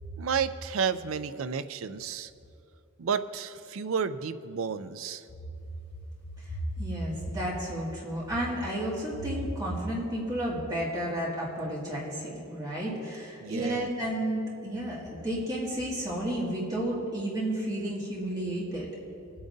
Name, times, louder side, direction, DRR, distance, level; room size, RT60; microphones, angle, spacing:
voice 1, 0.2-2.3 3.0-5.2 13.4-13.9, right 6 dB, 75° right, 12 dB, 0.4 m, -31 dB
voice 2, 6.5-18.9, right 1 dB, 20° right, -6 dB, 2.1 m, -32 dB
21.0 x 8.7 x 2.7 m, 2.6 s
head